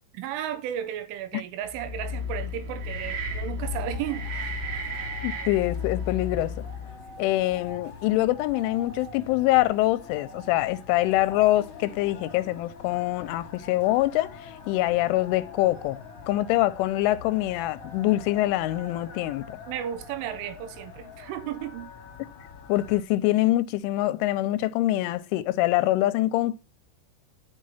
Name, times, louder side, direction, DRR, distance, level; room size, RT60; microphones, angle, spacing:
voice 1, 0.1-4.6 19.7-21.9, right 11 dB, 90° right, 3.4 m, -34 dB
sound 1, 1.7-7.0, left 2 dB, 60° right, 3.8 m, -33 dB
sound 2, 3.6-23.0, left 4 dB, 40° left, 2.5 m, -44 dB
voice 2, 5.2-6.6 7.2-16.0 16.3-19.6 22.7-26.6, left 16 dB, 90° left, 3.1 m, -24 dB
11.0 x 6.5 x 5.6 m
omnidirectional pair, 5.5 m